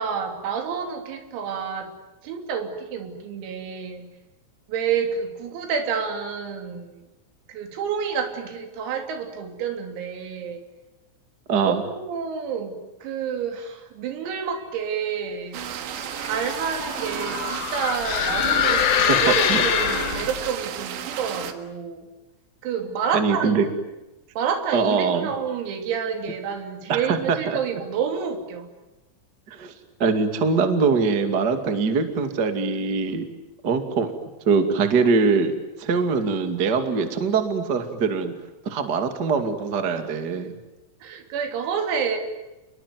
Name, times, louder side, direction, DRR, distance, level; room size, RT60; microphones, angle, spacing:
voice 1, 0.0-1.9 2.2-4.1 4.7-7.0 7.5-10.6 11.6-15.6 16.2-22.1 22.6-23.7 24.4-28.7 41.0-42.2, right 7 dB, 85° right, 5 dB, 5.8 m, -29 dB
voice 2, 11.5-11.8 19.1-19.2 19.5-19.6 23.1-23.7 24.7-25.3 26.9-27.6 29.5-29.7 30.0-33.3 33.6-34.1 34.4-35.5 35.8-38.3 38.6-40.5, right 5 dB, 35° right, 7 dB, 1.6 m, -22 dB
sound 1, 15.5-21.5, right 9 dB, 70° right, 3.6 m, -33 dB
sound 2, 16.0-20.5, left 9 dB, 65° left, 3.6 m, -24 dB
28.5 x 22.0 x 9.4 m, 1.0 s
omnidirectional pair, 5.9 m